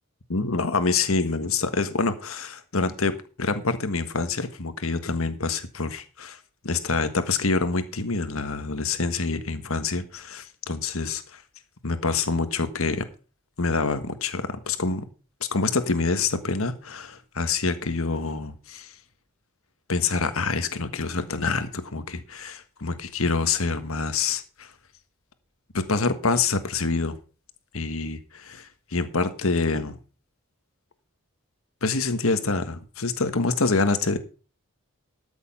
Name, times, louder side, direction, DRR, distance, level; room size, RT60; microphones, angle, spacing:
voice 1, 0.3-6.4 6.6-11.4 11.8-13.1 13.6-15.0 15.5-18.9 19.9-24.7 25.7-27.2 27.7-30.0 31.8-34.2, left 4 dB, 75° left, 1.5 m, -26 dB
13.0 x 7.0 x 5.4 m
head